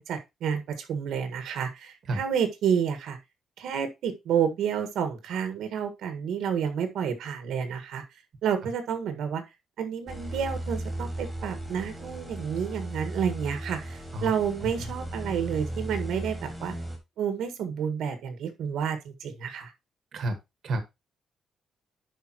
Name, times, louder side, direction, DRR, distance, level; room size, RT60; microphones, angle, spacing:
voice 1, 0.0-3.2 3.6-8.0 8.4-9.4 9.8-16.8 17.2-19.7, right 7 dB, 80° right, 9 dB, 1.5 m, -30 dB
voice 2, 2.1-2.2 14.1-14.3 20.1-20.3 20.6-20.8, right 1 dB, 55° right, 7 dB, 1.5 m, -29 dB
sound 1, 10.1-17.0, right 1 dB, 5° right, 2.4 m, -36 dB
10.5 x 5.2 x 2.9 m, 0.22 s
cardioid pair, 150°, 0 cm